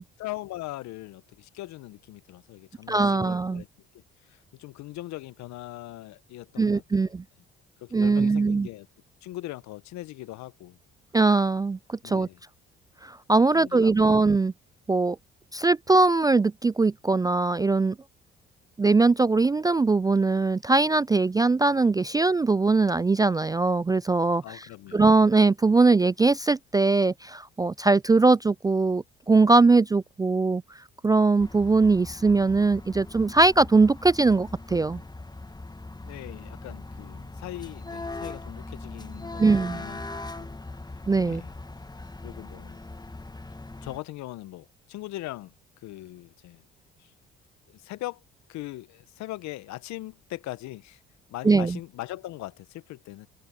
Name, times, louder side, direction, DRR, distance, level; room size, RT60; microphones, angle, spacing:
voice 1, 0.2-3.7 3.9-7.1 7.8-8.9 9.2-10.8 12.0-12.4 13.5-14.1 24.4-25.1 36.0-40.6 40.9-41.5 42.2-42.8 43.8-46.6 47.0-47.1 47.7-48.2 48.5-51.0 51.3-53.3, left 17 dB, 70° left, 1.3 m, -40 dB
voice 2, 2.9-3.6 6.6-7.2 7.9-8.7 11.1-12.3 13.0-14.5 14.9-15.2 15.5-18.0 18.8-24.6 24.9-30.6 31.0-35.0 39.4-39.8 41.1-41.4 51.4-51.8, right 3 dB, 15° right, 0.3 m, -21 dB
sound 1, 31.4-44.0, left 2 dB, 15° left, 1.7 m, -40 dB
hypercardioid pair, 50°, 29 cm